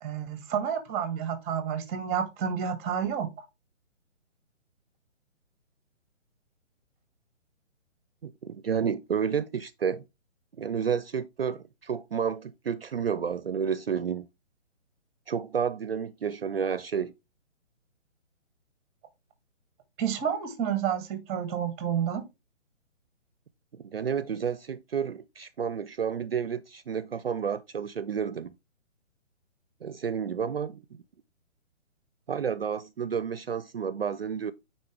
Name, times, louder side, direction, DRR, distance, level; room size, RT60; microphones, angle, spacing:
voice 1, 0.0-3.4 20.0-22.2, right 8 dB, 10° right, 0.7 m, -30 dB
voice 2, 8.2-10.0 10.6-14.3 15.3-17.1 23.7-28.5 29.8-30.8 32.3-34.5, right 7 dB, 50° right, 0.5 m, -30 dB
9.2 x 4.3 x 3.3 m
figure-of-eight pair, 135°, 38 cm